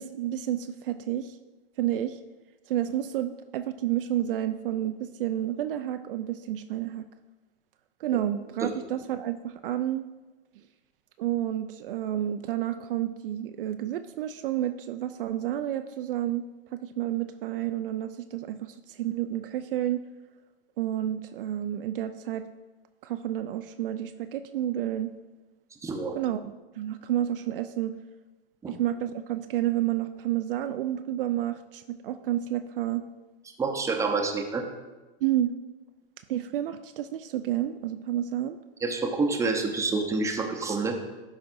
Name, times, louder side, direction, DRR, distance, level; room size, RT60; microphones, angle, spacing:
voice 1, 0.0-1.4 1.8-2.2 2.7-7.1 8.0-10.0 11.2-16.4 16.7-20.0 20.8-22.5 23.0-25.1 26.2-28.0 28.7-33.0 35.2-35.5 36.3-38.6, right 12 dB, 60° right, 9 dB, 0.4 m, -30 dB
voice 2, 25.8-26.2 28.6-28.7 33.6-34.6 38.8-40.9, right 3 dB, 10° right, 3 dB, 0.8 m, -27 dB
12.0 x 5.0 x 2.6 m, 1.2 s
hypercardioid pair, 110°, 31 cm